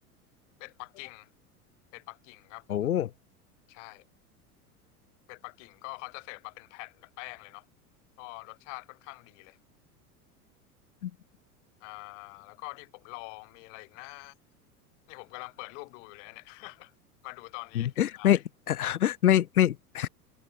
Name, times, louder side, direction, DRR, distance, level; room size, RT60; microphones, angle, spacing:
voice 1, 0.6-1.3 1.9-2.9 3.7-4.1 5.3-7.7 8.2-9.6 11.8-14.3 15.1-16.9 17.2-18.4, left 28 dB, 50° left, 6.7 m, -45 dB
voice 2, 2.7-3.1 11.0-11.1 17.7-18.4 18.7-20.1, left 11 dB, 70° left, 1.0 m, -25 dB
figure-of-eight pair, 80°, 46 cm